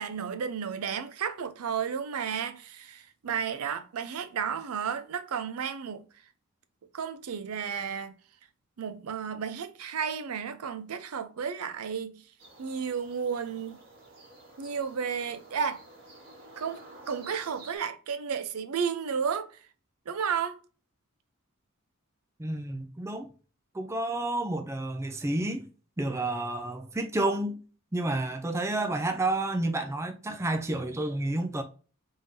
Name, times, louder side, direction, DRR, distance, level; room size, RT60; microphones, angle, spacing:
voice 1, 0.0-6.0 6.9-8.1 8.8-12.2 12.6-13.8 14.6-15.8 16.6-19.6 20.1-20.6, right 7 dB, 90° right, 0.5 m, -33 dB
sound 1, 12.4-17.8, right 2 dB, 45° right, 1.8 m, -51 dB
voice 2, 22.4-23.3 23.7-25.6 26.0-27.6 27.9-31.6, right 2 dB, 15° right, 0.4 m, -30 dB
3.6 x 3.4 x 2.6 m
head